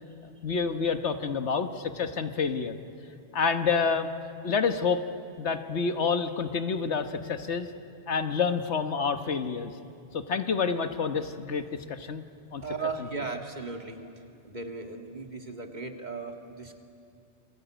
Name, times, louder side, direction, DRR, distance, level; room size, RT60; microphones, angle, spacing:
voice 1, 0.4-2.8 3.3-4.1 4.4-5.0 5.4-7.7 8.1-9.7 10.1-12.2 12.5-12.6, left 5 dB, 75° left, 8 dB, 1.5 m, -28 dB
voice 2, 12.6-14.0 14.4-16.8, right 4 dB, 40° right, 4 dB, 2.1 m, -36 dB
28.5 x 22.5 x 9.0 m, 2.6 s
omnidirectional pair, 1.2 m